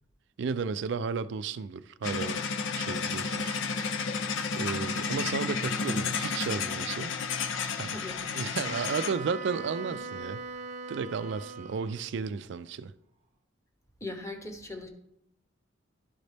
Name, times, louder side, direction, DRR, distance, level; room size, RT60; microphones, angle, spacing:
voice 1, 0.4-2.5 2.7-3.6 4.5-7.1 7.7-8.0 8.4-10.4 10.9-12.9, right 5 dB, 65° right, 0.4 m, -33 dB
sound 1, 2.0-9.2, left 5 dB, 80° left, 0.5 m, -32 dB
voice 2, 7.9-8.2 14.0-14.9, left 2 dB, 15° left, 0.9 m, -39 dB
Wind instrument woodwind instrument, 8.6-12.2, right 4 dB, 40° right, 0.8 m, -40 dB
11.5 x 4.0 x 3.3 m
head